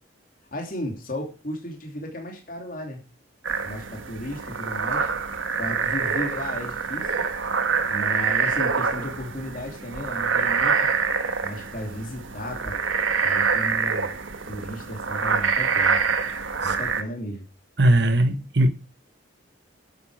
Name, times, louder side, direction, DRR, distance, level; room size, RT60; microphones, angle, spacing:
voice 1, 0.5-3.0 3.6-5.1 5.6-7.1 7.9-10.9 11.4-12.7 13.2-14.2 14.5-16.0 16.6-17.5, equal, 45° left, 3.0 m, -34 dB
sound 1, 3.4-17.0, right 5 dB, 85° right, 1.5 m, -26 dB
voice 2, 17.8-18.7, right 1 dB, 60° right, 1.2 m, -19 dB
12.0 x 8.3 x 5.0 m
head